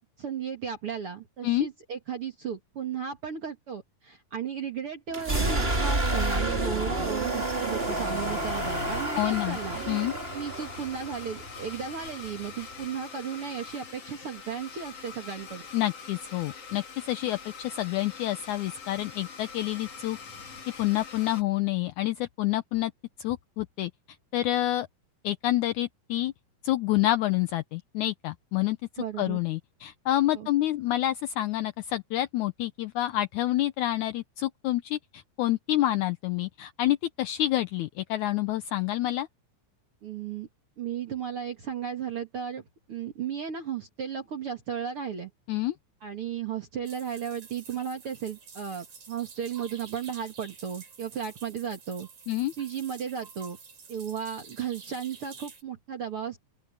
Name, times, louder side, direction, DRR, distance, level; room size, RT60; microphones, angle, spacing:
voice 1, 0.2-9.8 10.3-15.7 29.0-29.4 30.3-30.5 40.0-40.5 40.8-42.6 42.9-45.3 46.0-52.1 52.6-53.6 53.9-56.4, right 7 dB, 45° right, 2.5 m, -35 dB
sound 1, 5.1-12.8, right 2 dB, 20° right, 3.0 m, -30 dB
Domestic sounds home sounds, 6.2-21.4, left 5 dB, 50° left, 3.6 m, -44 dB
voice 2, 9.2-9.6 9.9-10.1 15.7-20.2 20.8-22.9 23.2-23.9 24.3-24.9 25.2-26.3 26.6-39.3 45.5-45.8 52.3-52.5, left 15 dB, 75° left, 2.0 m, -28 dB
sound 2, 46.8-55.6, right 5 dB, 70° right, 6.1 m, -49 dB
open air
omnidirectional pair, 3.8 m